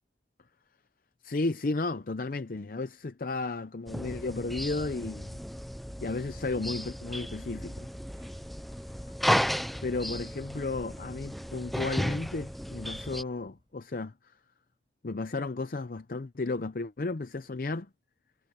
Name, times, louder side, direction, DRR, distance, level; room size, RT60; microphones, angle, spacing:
voice 1, 1.2-5.4 6.0-7.9 9.8-14.1 15.0-17.9, left 3 dB, 50° left, 0.6 m, -33 dB
sound 1, 3.9-13.2, equal, ahead, 0.3 m, -34 dB
sound 2, 8.1-13.9, equal, 25° right, 4.8 m, -58 dB
head